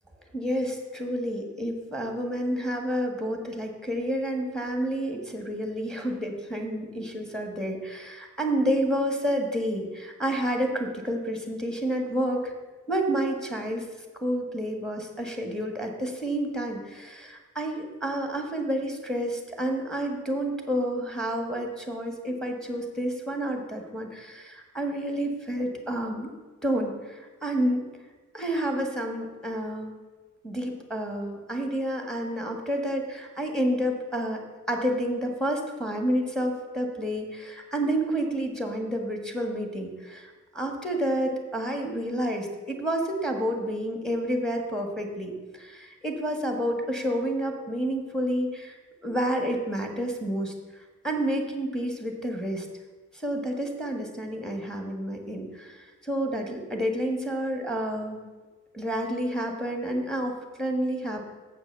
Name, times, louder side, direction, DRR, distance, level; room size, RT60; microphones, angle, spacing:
voice 1, 0.3-12.5 12.9-13.9 14.2-26.3 26.6-27.8 28.3-30.0 30.4-34.4 34.7-48.7 49.0-52.7 53.1-58.2 58.7-61.2, right 1 dB, ahead, 3 dB, 1.6 m, -29 dB
7.9 x 6.1 x 6.8 m, 1.3 s
wide cardioid pair, 105°, 32 cm